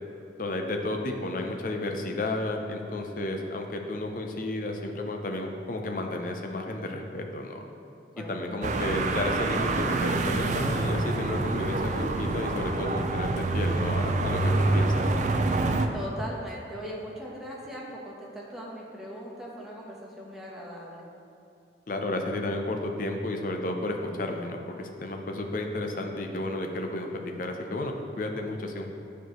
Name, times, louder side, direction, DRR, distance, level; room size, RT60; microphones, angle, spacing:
voice 1, 0.4-7.6 8.2-15.1 21.9-28.9, left 1 dB, 45° left, 3 dB, 0.6 m, -32 dB
voice 2, 8.1-8.7 15.9-21.0, equal, ahead, -5 dB, 1.0 m, -40 dB
sound 1, 8.6-15.9, right 2 dB, 40° right, 0.4 m, -26 dB
10.0 x 4.5 x 3.0 m, 2.6 s
head